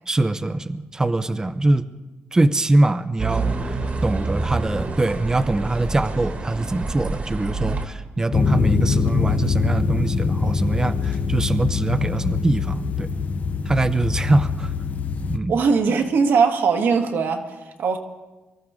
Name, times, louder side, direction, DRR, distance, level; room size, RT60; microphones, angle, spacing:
voice 1, 0.1-1.9 2.3-13.1 13.7-14.7 15.3-15.5, right 2 dB, 15° right, 0.6 m, -23 dB
sound 1, 3.2-7.8, right 3 dB, 40° right, 1.5 m, -27 dB
sound 2, 8.3-15.4, left 5 dB, 40° left, 0.7 m, -23 dB
voice 2, 15.5-18.0, right 5 dB, 70° right, 1.5 m, -20 dB
24.0 x 13.5 x 3.6 m
cardioid pair, 120°, 4 cm